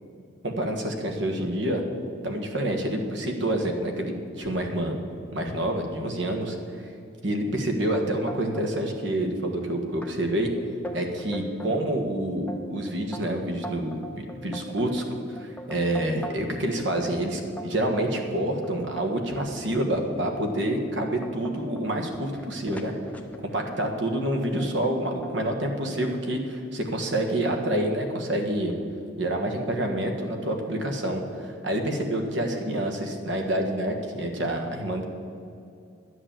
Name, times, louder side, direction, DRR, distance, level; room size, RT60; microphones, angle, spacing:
voice 1, 0.4-1.8 2.2-5.0 5.3-6.6 7.2-10.5 10.9-15.0 15.3-22.9 23.5-28.7 29.2-35.0, right 1 dB, 60° right, 3 dB, 1.5 m, -27 dB
sound 1, 7.9-8.9 9.1-9.7 10.0-10.1 10.6-11.8 12.2-16.6 16.9-19.5 20.1-20.2 20.7-23.8 24.6-25.0 25.2-26.0, equal, 10° left, 0.7 m, -40 dB
11.5 x 8.0 x 7.5 m, 2.5 s
head